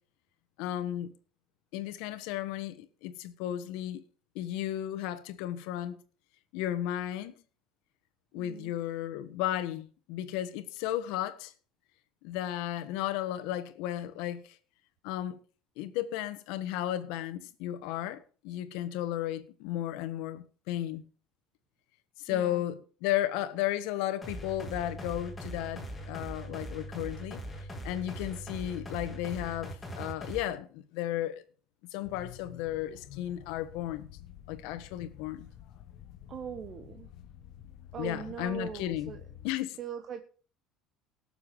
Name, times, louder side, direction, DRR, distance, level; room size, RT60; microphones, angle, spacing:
voice 1, 0.6-1.1 1.7-4.0 4.3-5.9 6.5-7.4 8.3-11.5 12.2-14.6 15.0-15.4 15.8-21.0 22.2-27.4 27.8-31.4 31.9-34.1 34.5-35.5 38.0-39.1 39.4-39.8, left 12 dB, 80° left, 1.4 m, -34 dB
voice 2, 8.3-8.8 22.3-22.6 36.3-37.1 37.9-39.3 39.8-40.2, right 7 dB, 35° right, 1.0 m, -41 dB
sound 1, 24.2-30.4, equal, 10° left, 2.5 m, -41 dB
sound 2, 32.0-39.5, left 11 dB, 55° left, 1.0 m, -50 dB
18.0 x 7.1 x 4.8 m
cardioid pair, 140°, 0 cm